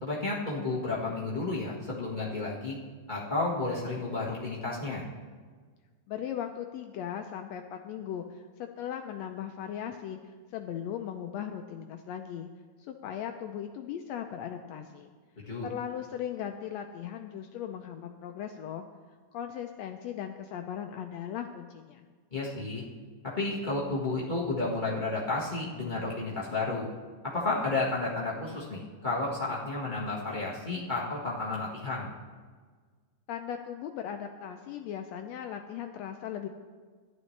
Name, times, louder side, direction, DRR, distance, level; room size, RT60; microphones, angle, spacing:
voice 1, 0.0-2.8 3.1-5.0 15.5-15.7 22.3-22.8 23.2-26.9 27.3-32.1, left 3 dB, 55° left, -7 dB, 0.5 m, -32 dB
voice 2, 6.1-12.5 12.9-15.1 15.6-18.8 19.3-22.1 33.3-36.5, left 9 dB, 85° left, 5 dB, 1.5 m, -38 dB
14.0 x 11.0 x 3.2 m, 1.6 s
omnidirectional pair, 3.6 m